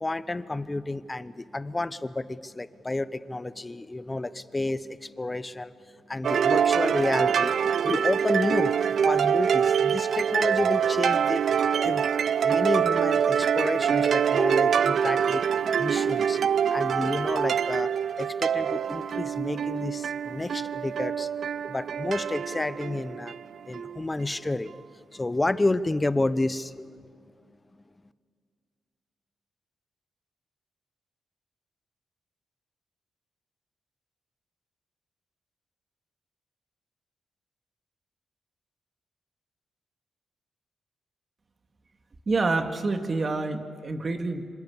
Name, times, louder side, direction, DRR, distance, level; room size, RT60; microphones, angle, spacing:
voice 1, 0.0-5.7 6.1-7.5 7.8-8.8 9.0-11.4 11.8-12.1 12.4-15.4 15.8-21.3 21.7-23.4 23.6-24.7 25.1-26.9, left 2 dB, 20° left, 14 dB, 1.0 m, -30 dB
sound 1, 6.2-24.1, right 8 dB, 65° right, 0.6 m, -25 dB
voice 2, 42.3-44.4, right 3 dB, 40° right, 6 dB, 2.3 m, -27 dB
26.5 x 26.5 x 7.4 m, 2.1 s
cardioid pair, 95°, 0 cm